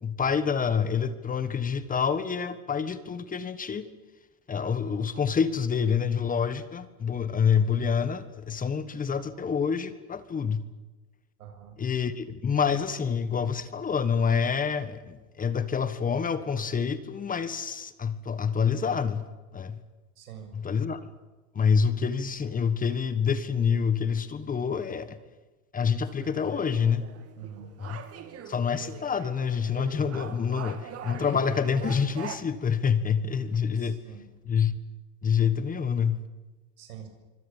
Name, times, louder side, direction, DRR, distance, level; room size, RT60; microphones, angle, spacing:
voice 1, 0.0-3.9 4.5-10.7 11.8-19.2 19.5-19.8 20.5-21.0 21.5-25.2 25.7-27.0 27.8-28.0 28.5-34.0 34.5-34.8 35.2-36.2, left 6 dB, 20° left, 13 dB, 1.5 m, -27 dB
voice 2, 11.4-11.7 20.2-20.5 27.4-27.7 33.8-34.2 36.8-37.1, right 9 dB, 85° right, 5 dB, 7.3 m, -45 dB
sound 1, 26.0-32.4, right 8 dB, 35° right, 2.7 m, -43 dB
25.5 x 25.0 x 7.3 m, 1.2 s
supercardioid pair, 120°, 43 cm